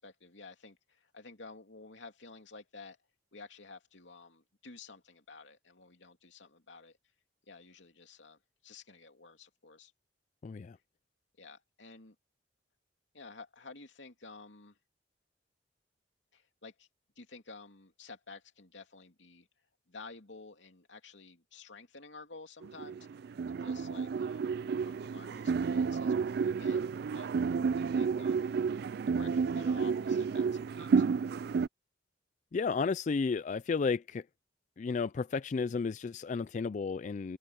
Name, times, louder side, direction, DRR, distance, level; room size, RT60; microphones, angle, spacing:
voice 1, 0.0-3.0 3.3-7.0 7.5-9.9 11.4-12.1 13.1-14.8 16.3-16.9 17.2-19.5 19.9-23.1 23.4-26.8 27.1-27.3 27.8-28.7 29.1-31.0, left 4 dB, 80° left, 2.7 m, -52 dB
voice 2, 10.4-10.8 32.5-34.3 34.8-37.4, left 5 dB, 40° left, 0.3 m, -32 dB
sound 1, 22.6-31.7, right 5 dB, 55° right, 0.3 m, -31 dB
open air
head